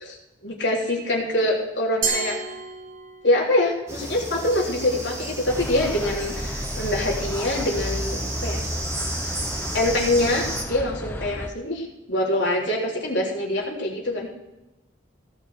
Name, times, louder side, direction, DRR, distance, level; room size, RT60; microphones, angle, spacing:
voice 1, 0.4-2.4 3.2-8.6 9.7-14.3, left 1 dB, 70° left, -2 dB, 3.6 m, -24 dB
Glass, 2.0-3.5, right 5 dB, 45° right, 2.6 m, -29 dB
sound 1, 3.9-10.7, right 1 dB, 15° right, 1.9 m, -33 dB
sound 2, 5.5-11.5, left 1 dB, 10° left, 0.9 m, -32 dB
17.0 x 5.8 x 6.5 m, 0.98 s
head